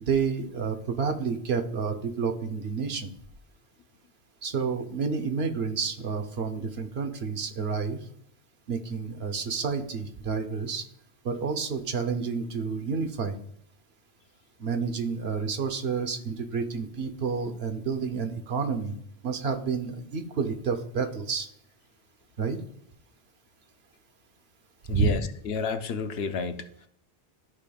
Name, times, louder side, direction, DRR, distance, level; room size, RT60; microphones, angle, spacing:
voice 1, 0.0-3.1 4.4-8.1 8.7-10.9 11.2-13.4 14.6-19.0 19.2-21.5 22.4-22.6 24.9-25.1, right 5 dB, 75° right, 6 dB, 1.1 m, -29 dB
voice 2, 24.9-26.9, left 5 dB, 75° left, 9 dB, 0.9 m, -31 dB
13.0 x 5.1 x 2.3 m, 0.67 s
omnidirectional pair, 1.1 m